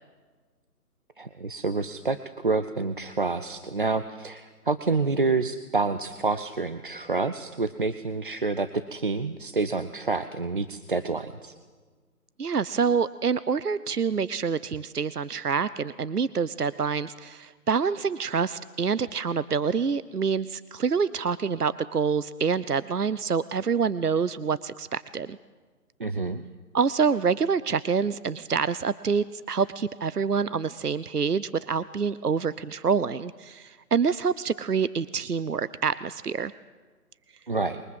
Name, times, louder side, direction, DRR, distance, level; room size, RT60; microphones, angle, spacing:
voice 1, 1.2-11.6 26.0-26.4 37.5-37.8, right 3 dB, 35° right, 11 dB, 0.8 m, -28 dB
voice 2, 12.4-25.4 26.7-36.5, right 5 dB, 75° right, 17 dB, 0.9 m, -26 dB
26.5 x 23.0 x 7.5 m, 1.5 s
figure-of-eight pair, 150°, 47 cm